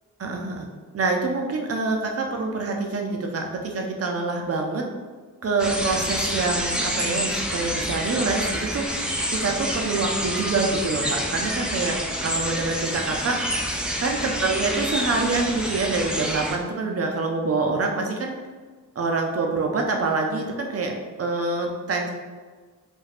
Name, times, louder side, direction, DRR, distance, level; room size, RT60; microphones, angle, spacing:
voice 1, 0.2-0.7 0.9-4.9 5.4-13.7 14.0-18.3 19.0-20.9 21.2-22.1, right 3 dB, 45° right, 2 dB, 0.6 m, -26 dB
sound 1, 5.6-16.6, equal, 5° right, 0.4 m, -28 dB
2.4 x 2.1 x 3.4 m, 1.4 s
supercardioid pair, 45°, 33 cm